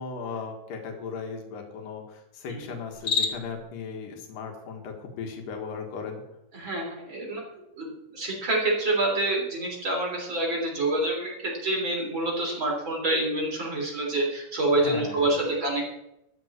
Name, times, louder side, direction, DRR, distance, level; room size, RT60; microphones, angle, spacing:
voice 1, 0.0-6.2 14.8-15.4, left 5 dB, 80° left, 2 dB, 3.3 m, -37 dB
Cricket, 2.9-3.6, left 5 dB, 50° left, 1.2 m, -28 dB
voice 2, 6.5-7.5 7.8-15.9, right 2 dB, 35° right, -2 dB, 3.9 m, -27 dB
13.5 x 5.8 x 8.6 m, 0.84 s
omnidirectional pair, 3.9 m